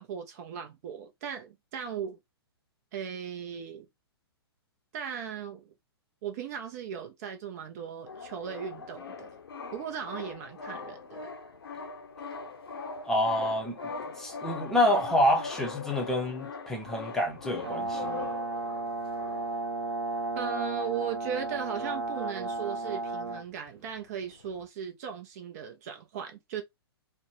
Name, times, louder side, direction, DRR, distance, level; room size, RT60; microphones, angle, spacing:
voice 1, 0.0-2.2 2.9-3.9 4.9-5.7 6.2-9.4 9.7-11.3 20.4-26.6, right 8 dB, 40° right, 0.5 m, -37 dB
sound 1, 8.1-19.8 20.4-20.5 20.6-20.8 21.3-22.6 22.9-24.7, left 4 dB, 65° left, 0.6 m, -42 dB
voice 2, 13.1-13.8 14.2-18.3, left 1 dB, 5° left, 0.6 m, -27 dB
Brass instrument, 17.6-23.4, right 2 dB, 75° right, 0.8 m, -33 dB
2.5 x 2.0 x 2.9 m
figure-of-eight pair, 115°, 13 cm